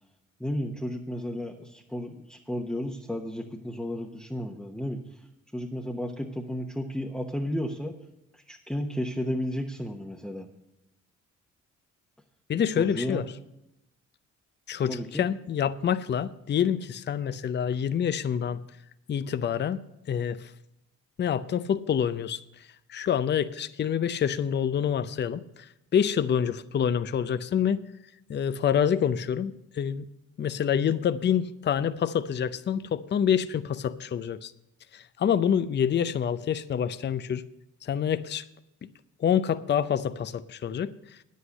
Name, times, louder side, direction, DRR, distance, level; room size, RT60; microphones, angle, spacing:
voice 1, 0.4-5.0 5.5-7.9 8.3-10.5 12.8-13.2 14.9-15.2, equal, 5° left, 1 dB, 1.0 m, -33 dB
voice 2, 12.5-13.3 14.7-18.6 19.1-19.8 20.1-20.5 21.2-27.8 28.3-30.1 30.4-34.5 34.9-37.4 37.8-38.4 39.2-41.2, left 8 dB, 35° left, 13 dB, 0.6 m, -27 dB
9.6 x 8.4 x 6.4 m, 0.86 s
cardioid pair, 90°, 30 cm